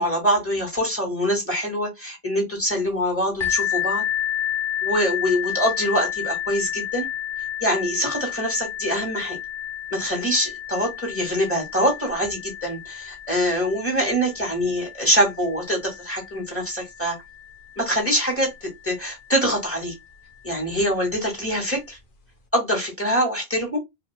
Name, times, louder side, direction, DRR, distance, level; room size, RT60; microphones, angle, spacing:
voice 1, 0.0-4.0 4.8-7.1 7.6-9.4 9.9-17.2 17.8-19.9 20.4-22.0 22.5-23.8, equal, 15° left, 2.3 m, -24 dB
sound 1, 3.4-18.9 19.7-19.8 20.4-20.5, left 11 dB, 55° left, 1.1 m, -31 dB
4.9 x 3.0 x 2.3 m
omnidirectional pair, 1.0 m